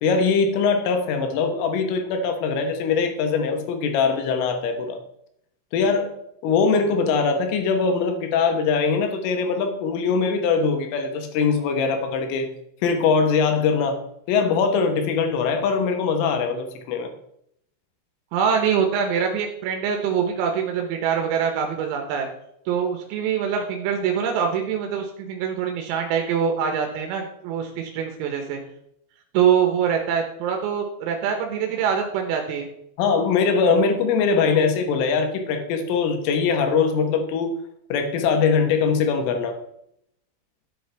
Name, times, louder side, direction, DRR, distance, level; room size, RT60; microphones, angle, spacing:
voice 1, 0.0-5.0 5.7-6.1 6.4-12.5 12.8-14.0 14.3-17.1 33.0-37.5 37.9-39.6, left 5 dB, 80° left, 5 dB, 3.7 m, -22 dB
voice 2, 18.3-22.3 22.7-28.6 29.3-32.7, right 7 dB, 85° right, 3 dB, 3.8 m, -24 dB
11.0 x 8.5 x 3.4 m, 0.73 s
omnidirectional pair, 5.9 m